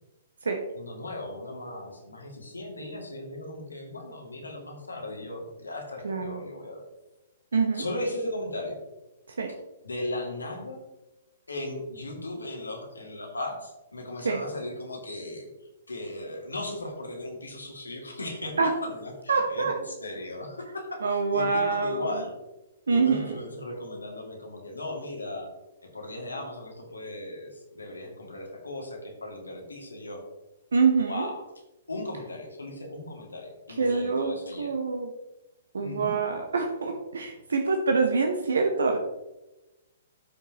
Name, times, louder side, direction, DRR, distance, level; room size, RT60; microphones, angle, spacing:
voice 1, 0.7-6.9 7.7-8.8 9.8-10.8 11.5-15.5 15.9-22.3 22.9-25.5 25.8-30.2 31.1-31.4 31.9-34.7 35.8-36.2, left 1 dB, 75° left, 0 dB, 2.3 m, -37 dB
voice 2, 6.0-6.4 7.5-7.8 9.3-9.5 14.2-14.4 18.6-18.7 19.3-19.7 21.0-22.2 22.9-23.4 30.7-31.3 33.8-35.1 35.7-39.0, right 4 dB, 65° right, 4 dB, 1.0 m, -25 dB
13.0 x 5.5 x 3.0 m, 1.0 s
figure-of-eight pair, 120°, 0 cm